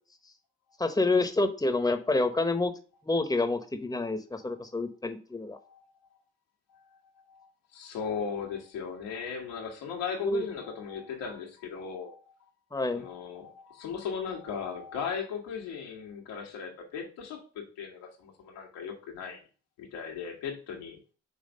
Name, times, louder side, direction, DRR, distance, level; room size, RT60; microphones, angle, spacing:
voice 1, 0.8-2.7 3.0-5.6 10.2-10.5 12.7-13.0, left 2 dB, 10° left, 8 dB, 1.0 m, -28 dB
voice 2, 5.5-6.2 6.7-6.9 7.3-7.5 7.7-12.2 12.9-19.4 19.8-21.0, left 6 dB, 85° left, 1 dB, 1.6 m, -37 dB
5.6 x 3.4 x 5.2 m, 0.37 s
hypercardioid pair, 50°, 33 cm